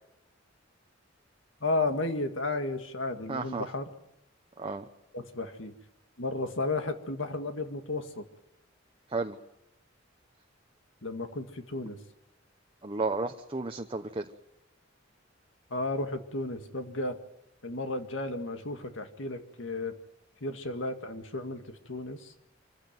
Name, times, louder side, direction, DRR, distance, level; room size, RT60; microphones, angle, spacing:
voice 1, 1.6-3.9 5.1-5.7 6.2-8.2 11.0-12.0 15.7-17.2 17.6-19.9 20.4-21.6 21.9-22.2, left 2 dB, 70° left, 6 dB, 2.1 m, -33 dB
voice 2, 3.3-3.7 4.6-4.9 9.1-9.4 12.8-14.3, right 3 dB, 25° right, 4 dB, 0.9 m, -32 dB
25.5 x 15.0 x 9.2 m, 0.86 s
head